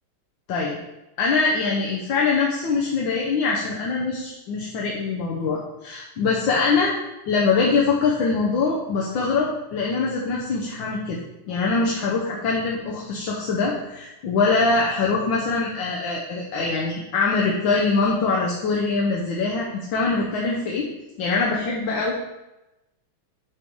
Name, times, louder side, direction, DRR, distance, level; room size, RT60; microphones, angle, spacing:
voice 1, 1.2-6.9 7.3-11.2 11.5-20.9 21.2-22.1, left 4 dB, 65° left, -3 dB, 1.5 m, -23 dB
8.2 x 4.6 x 3.6 m, 0.98 s
omnidirectional pair, 2.4 m